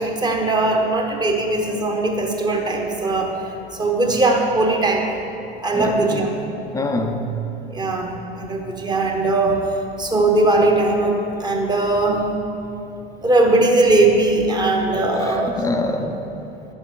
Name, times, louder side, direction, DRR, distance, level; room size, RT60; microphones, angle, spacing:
voice 1, 0.0-5.1 5.6-6.3 7.7-9.7 10.0-12.4 13.2-15.6, right 2 dB, 15° right, 1.0 m, -19 dB
voice 2, 5.7-6.3 6.7-7.5 15.2-16.2, left 1 dB, 10° left, 0.5 m, -25 dB
10.5 x 7.0 x 3.8 m
figure-of-eight pair, 80°, 29 cm